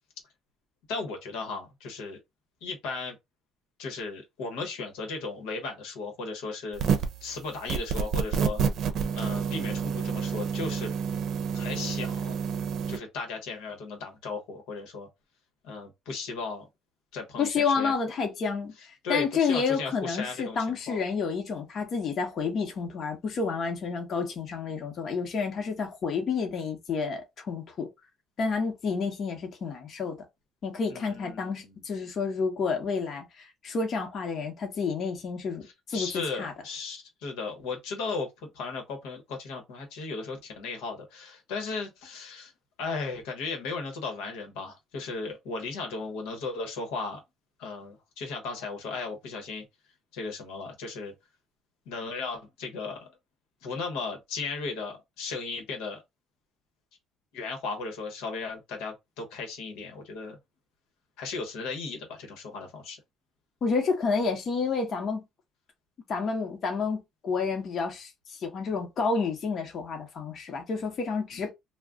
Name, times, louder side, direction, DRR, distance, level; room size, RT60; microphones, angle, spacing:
voice 1, 0.9-2.2 2.6-3.1 3.8-8.6 9.1-10.9 11.5-12.3 12.9-15.1 15.6-16.6 17.1-17.9 19.0-21.0 30.9-31.7 35.9-42.5 42.8-47.2 47.6-49.6 50.1-51.1 51.9-53.1 53.6-56.0 57.3-60.4 61.2-63.0, left 4 dB, 85° left, 1.0 m, -36 dB
sound 1, 6.7-7.2 7.7-13.0, right 6 dB, 55° right, 0.6 m, -29 dB
voice 2, 17.4-27.9 28.4-30.2 30.6-36.5 63.6-65.2 66.1-71.5, left 5 dB, 45° left, 0.9 m, -30 dB
2.4 x 2.2 x 3.6 m
cardioid pair, 105°, 0 cm